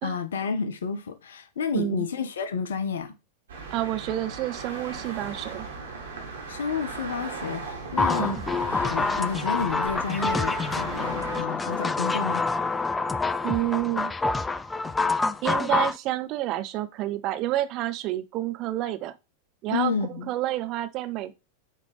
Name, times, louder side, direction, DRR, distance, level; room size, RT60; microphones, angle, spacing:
voice 1, 0.0-3.1 6.5-8.4 8.7-12.5 19.7-20.3, left 5 dB, 65° left, 0.6 m, -30 dB
voice 2, 1.7-2.1 3.7-5.7 8.2-8.5 13.4-14.1 15.4-19.1 19.6-19.9 20.3-21.3, right 14 dB, 40° right, 0.6 m, -29 dB
sound 1, 3.5-11.4, right 4 dB, 65° right, 1.8 m, -37 dB
sound 2, 8.0-16.0, left 3 dB, 10° left, 0.3 m, -27 dB
8.2 x 3.3 x 3.5 m
figure-of-eight pair, 90°, 0 cm